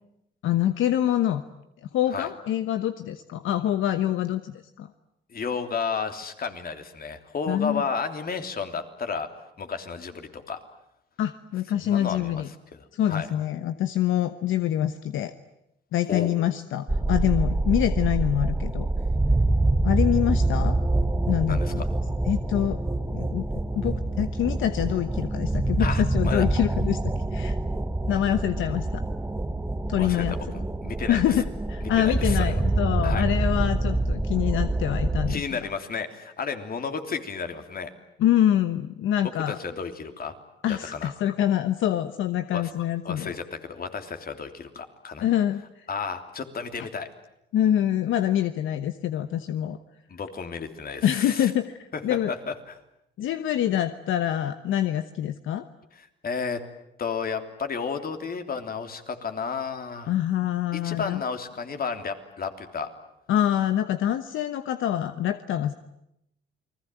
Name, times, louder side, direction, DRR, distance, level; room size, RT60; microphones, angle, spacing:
voice 1, 0.4-1.4 1.9-4.9 7.5-7.8 11.2-12.5 12.9-15.3 15.9-18.9 19.8-20.8 21.3-21.8 22.3-22.8 23.1-23.5 23.7-27.0 27.3-27.6 28.1-29.0 29.9-30.3 31.1-35.7 38.2-39.6 40.6-43.3 45.2-45.6 47.5-49.8 51.0-51.7 52.0-52.3 53.2-55.6 60.1-61.2 63.3-65.7, left 11 dB, 80° left, 10 dB, 1.1 m, -25 dB
voice 2, 5.3-9.3 9.6-10.6 11.8-13.3 16.1-16.4 21.5-21.9 25.8-26.4 30.0-31.4 31.8-32.6 33.0-33.2 35.3-37.9 39.5-40.3 40.7-41.1 42.5-42.7 43.0-45.3 45.9-47.1 50.1-51.5 51.9-52.8 56.0-56.6 57.0-60.1 60.7-62.9, left 5 dB, 50° left, 7 dB, 3.3 m, -32 dB
sound 1, 16.9-35.4, right 2 dB, 10° right, 1.3 m, -26 dB
29.5 x 20.5 x 9.3 m, 0.81 s
cardioid pair, 90°, 20 cm